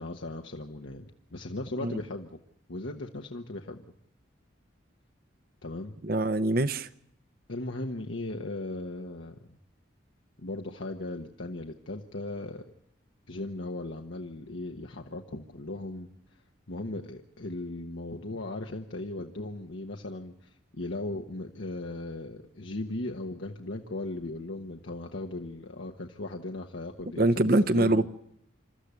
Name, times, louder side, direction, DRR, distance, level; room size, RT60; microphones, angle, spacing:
voice 1, 0.0-2.4 2.7-3.8 5.6-5.9 7.5-9.4 10.4-12.7 13.3-16.4 16.7-28.1, left 2 dB, 80° left, 1.2 m, -37 dB
voice 2, 6.0-6.9 27.2-28.1, right 1 dB, 50° right, 0.8 m, -24 dB
28.0 x 13.5 x 8.2 m
head